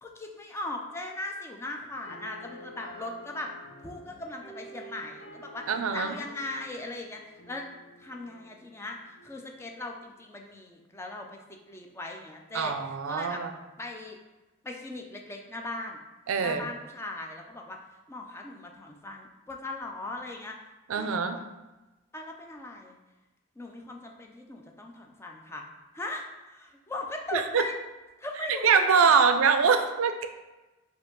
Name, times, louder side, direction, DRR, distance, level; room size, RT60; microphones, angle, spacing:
voice 1, 0.0-3.5 3.8-7.7 8.0-13.4 13.8-14.2 14.6-16.0 16.4-17.8 18.1-20.6 20.9-21.4 22.1-23.0 23.6-25.6 25.9-27.8 28.2-29.2, left 2 dB, 10° left, 2 dB, 0.4 m, -39 dB
sound 1, 2.0-10.0, equal, 60° left, 1.0 m, -50 dB
voice 2, 5.7-6.2 12.5-13.5 16.3-16.7 20.9-21.4 27.3-27.6 28.6-30.3, right 6 dB, 80° right, 7 dB, 0.4 m, -23 dB
4.8 x 2.7 x 3.8 m, 1.1 s
head